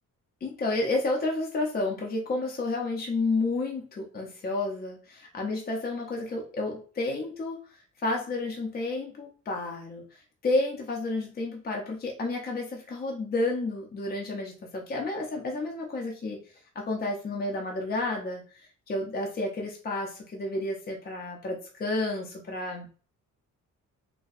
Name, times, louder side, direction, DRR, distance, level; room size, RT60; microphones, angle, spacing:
voice 1, 0.4-7.6 8.0-16.4 16.8-22.9, left 2 dB, 30° left, 0 dB, 0.6 m, -31 dB
4.0 x 2.2 x 2.5 m, 0.39 s
wide cardioid pair, 155°, 32 cm